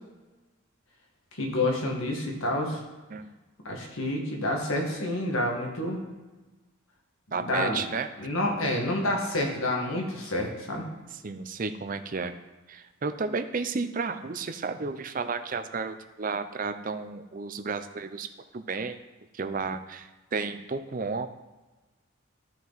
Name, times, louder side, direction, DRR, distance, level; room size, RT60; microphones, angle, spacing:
voice 1, 1.4-2.8 3.7-6.1 7.4-7.8 8.2-10.9, left 1 dB, 80° left, 0 dB, 1.8 m, -28 dB
voice 2, 7.3-8.1 11.1-12.3 12.7-18.3 18.5-19.0 19.3-21.3, right 4 dB, 40° right, 9 dB, 0.5 m, -32 dB
13.0 x 4.6 x 4.1 m, 1.2 s
head